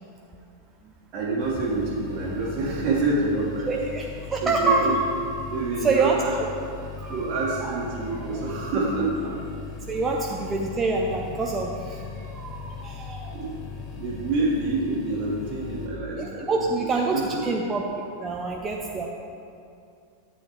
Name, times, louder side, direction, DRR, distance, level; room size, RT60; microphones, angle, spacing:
voice 1, 1.1-3.7 4.4-5.0 5.5-6.3 6.7-6.8 7.1-9.4 13.3-13.6 13.9-16.9 17.1-17.2, right 3 dB, 40° right, -7 dB, 1.5 m, -27 dB
sound 1, 1.4-15.9, left 5 dB, 30° left, 1.3 m, -39 dB
voice 2, 3.7-4.9 5.8-6.2 7.0-7.8 8.1-8.4 9.9-13.4 16.2-17.8 18.2-19.1, right 3 dB, 20° right, 0 dB, 0.6 m, -27 dB
11.5 x 8.0 x 3.1 m, 2.5 s
figure-of-eight pair, 90°, 0 cm